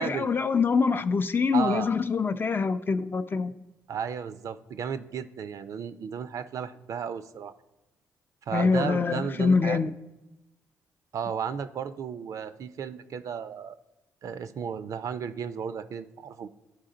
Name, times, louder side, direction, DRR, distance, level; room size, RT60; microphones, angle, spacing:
voice 1, 0.0-3.5 8.5-9.9, left 5 dB, 35° left, 0.5 m, -25 dB
voice 2, 1.5-1.9 3.9-7.5 8.5-9.8 11.1-13.8 14.2-16.5, right 7 dB, 60° right, 0.5 m, -34 dB
12.0 x 4.9 x 3.8 m
cardioid pair, 75°, 6 cm